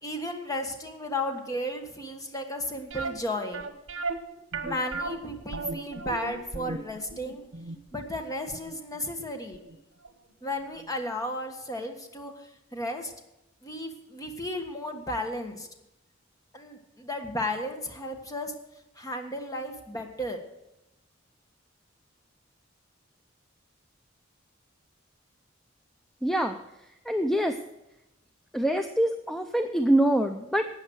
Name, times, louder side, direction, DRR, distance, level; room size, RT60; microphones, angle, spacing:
voice 1, 0.0-3.6 4.6-7.5 7.9-9.6 10.4-13.1 13.6-15.7 16.5-18.5 19.0-20.4, left 1 dB, 20° left, 4 dB, 1.5 m, -34 dB
sound 1, 2.9-9.8 10.0-10.1 10.7-10.8 11.1-11.2, right 3 dB, 75° right, 1.3 m, -36 dB
voice 2, 26.2-26.6 27.1-27.6 28.5-30.7, right 1 dB, ahead, 6 dB, 0.5 m, -25 dB
13.0 x 8.6 x 6.3 m, 0.91 s
head